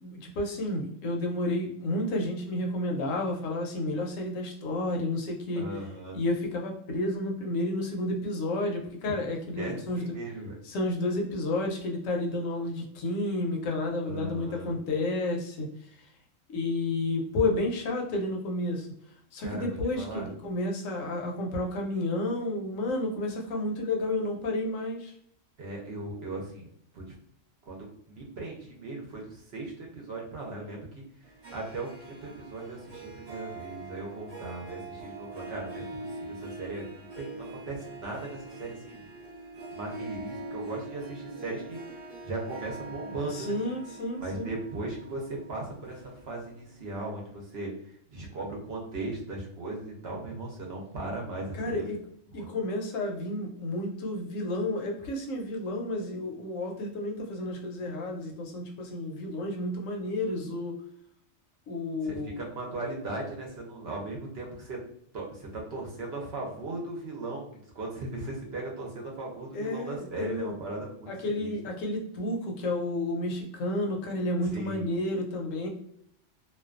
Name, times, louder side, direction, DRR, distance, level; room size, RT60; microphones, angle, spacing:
voice 1, 0.0-5.7 6.1-10.1 10.6-16.1 16.5-18.9 19.3-25.1 43.3-44.5 51.6-52.0 52.3-60.8 61.7-62.4 69.5-70.6 71.1-75.7, left 2 dB, 80° left, 1 dB, 1.0 m, -31 dB
voice 2, 5.5-6.2 9.6-10.6 14.0-14.8 19.4-20.3 25.6-26.7 26.9-27.0 27.6-31.0 31.5-39.1 39.7-43.6 44.2-51.8 52.4-52.5 62.0-64.8 65.1-71.1 71.4-71.5 74.4-74.9, right 2 dB, 60° right, -1 dB, 0.8 m, -38 dB
Harp, 31.2-46.6, right 2 dB, 30° right, 1.0 m, -43 dB
2.5 x 2.2 x 2.4 m, 0.69 s
omnidirectional pair, 1.4 m